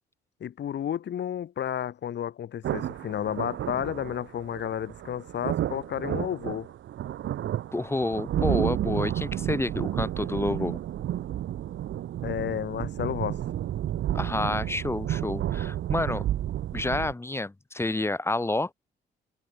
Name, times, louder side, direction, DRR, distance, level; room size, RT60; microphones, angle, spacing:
voice 1, 0.4-6.7 12.2-13.4, left 10 dB, 60° left, 3.0 m, -32 dB
sound 1, 2.6-17.1, right 12 dB, 75° right, 3.5 m, -31 dB
voice 2, 7.7-10.8 14.1-16.3 16.7-18.7, left 2 dB, 10° left, 1.2 m, -29 dB
cardioid pair, 90°, 20 cm